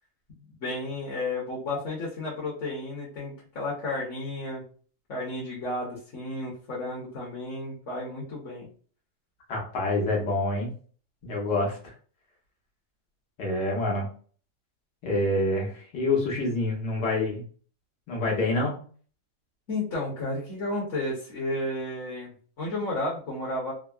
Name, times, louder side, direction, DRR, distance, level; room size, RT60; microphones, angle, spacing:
voice 1, 0.6-4.6 5.1-8.7 19.7-23.7, left 2 dB, 55° left, -5 dB, 1.1 m, -32 dB
voice 2, 9.5-10.7 11.2-11.9 13.4-14.1 15.0-17.4 18.1-18.7, left 2 dB, 90° left, -1 dB, 1.5 m, -27 dB
3.6 x 2.0 x 2.3 m, 0.43 s
omnidirectional pair, 1.7 m